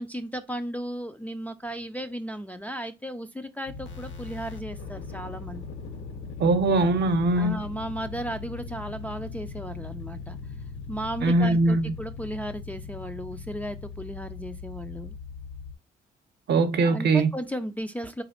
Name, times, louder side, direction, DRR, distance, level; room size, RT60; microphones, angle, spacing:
voice 1, 0.0-5.6 7.4-10.4 10.9-15.1 16.8-18.2, equal, 10° left, 0.4 m, -35 dB
sound 1, 3.7-15.7, left 4 dB, 75° left, 1.0 m, -39 dB
voice 2, 6.4-7.6 11.2-11.9 16.5-17.3, right 2 dB, 60° right, 0.7 m, -21 dB
4.0 x 3.0 x 2.9 m
cardioid pair, 90°, 20 cm